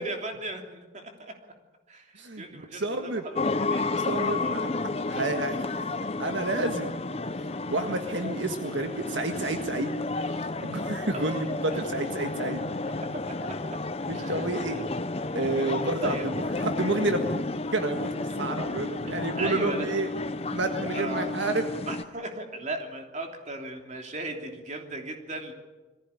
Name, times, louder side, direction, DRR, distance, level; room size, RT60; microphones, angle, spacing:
voice 1, 0.0-1.3 1.9-2.0 2.4-4.7 7.8-7.9 11.1-11.8 12.1-12.5 13.4-13.5 14.2-14.9 16.0-16.3 19.1-20.0 20.9-21.6 21.9-25.5, right 2 dB, 40° right, 3 dB, 3.1 m, -37 dB
voice 2, 2.2-3.2 3.9-5.9 6.2-6.9 7.7-10.0 10.6-12.6 14.1-14.8 15.3-16.2 16.6-17.3 17.7-20.1 20.5-21.6, right 2 dB, 75° right, 5 dB, 1.7 m, -30 dB
sound 1, 3.4-22.0, left 3 dB, 30° left, 0.8 m, -32 dB
22.0 x 15.5 x 9.8 m, 1.2 s
head